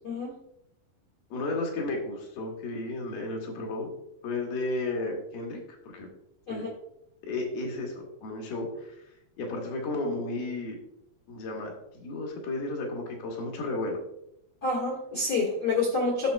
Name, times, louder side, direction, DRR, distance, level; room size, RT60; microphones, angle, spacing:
voice 1, 0.0-0.4 6.5-6.7 14.6-16.3, left 3 dB, 50° left, -4 dB, 1.2 m, -28 dB
voice 2, 1.3-3.9 4.2-5.6 5.9-6.1 6.5-6.6 7.2-9.0 9.4-10.8 11.3-14.0, left 2 dB, 80° left, 0 dB, 3.3 m, -33 dB
11.0 x 6.4 x 2.2 m, 0.80 s
omnidirectional pair, 4.3 m